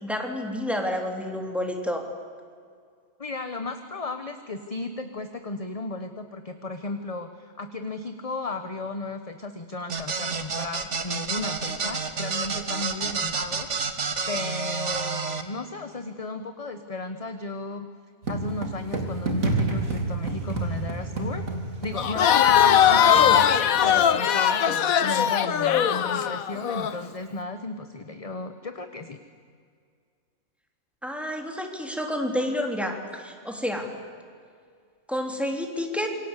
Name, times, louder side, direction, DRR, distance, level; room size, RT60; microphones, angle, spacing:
voice 1, 0.0-2.1 31.0-33.9 35.1-36.1, left 1 dB, ahead, 2 dB, 3.3 m, -29 dB
voice 2, 3.2-17.9 18.3-21.5 21.8-29.2, left 2 dB, 30° left, 8 dB, 1.1 m, -35 dB
sound 1, 9.9-15.4, right 5 dB, 60° right, 1.9 m, -29 dB
sound 2, 18.2-24.0, right 2 dB, 80° right, 3.4 m, -30 dB
Crowd, 22.0-26.9, left 9 dB, 90° left, 1.4 m, -20 dB
27.5 x 24.0 x 8.3 m, 2.2 s
omnidirectional pair, 1.4 m